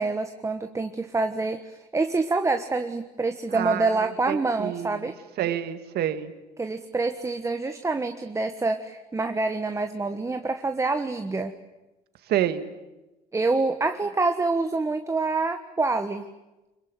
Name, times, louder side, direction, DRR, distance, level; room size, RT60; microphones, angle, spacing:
voice 1, 0.0-5.2 6.6-11.5 13.3-16.3, right 3 dB, 15° right, 7 dB, 1.4 m, -26 dB
voice 2, 3.5-5.1 5.4-6.3 12.3-12.6, right 11 dB, 70° right, 10 dB, 1.9 m, -28 dB
26.0 x 22.0 x 9.3 m, 1.0 s
cardioid pair, 110°, 17 cm